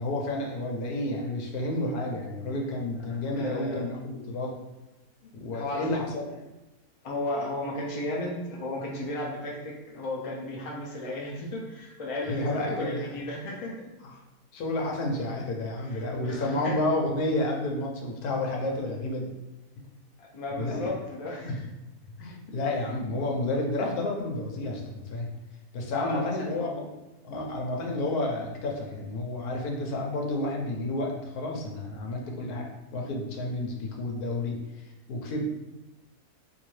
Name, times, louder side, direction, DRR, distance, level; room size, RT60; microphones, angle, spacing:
voice 1, 0.0-4.6 5.3-6.3 12.3-13.1 14.5-19.3 20.6-20.9 21.5-21.6 22.2-25.3 25.7-26.9 27.2-34.6 35.1-35.5, left 2 dB, 90° left, 0 dB, 1.2 m, -30 dB
voice 2, 3.3-3.8 5.5-6.0 7.0-13.9 15.8-16.9 20.2-21.6 25.9-26.7, left 1 dB, 40° left, -2 dB, 0.5 m, -34 dB
3.6 x 2.6 x 3.1 m, 1.0 s
omnidirectional pair, 1.6 m